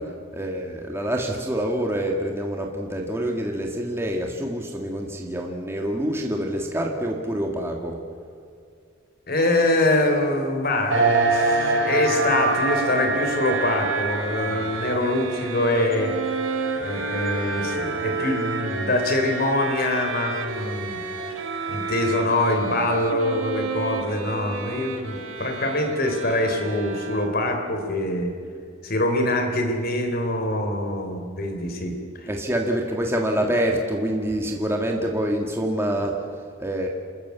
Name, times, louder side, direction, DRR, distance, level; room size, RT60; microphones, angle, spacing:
voice 1, 0.0-8.0 14.4-14.7 32.3-36.9, right 1 dB, 10° right, 1 dB, 1.8 m, -26 dB
voice 2, 9.3-16.1 16.8-21.0 21.7-28.3 28.8-32.3, left 1 dB, 45° left, 5 dB, 3.6 m, -24 dB
sound 1, 10.9-22.3, right 3 dB, 70° right, 5.3 m, -27 dB
Bowed string instrument, 13.1-27.6, right 4 dB, 85° right, 2.2 m, -32 dB
29.0 x 13.5 x 8.3 m, 2.3 s
head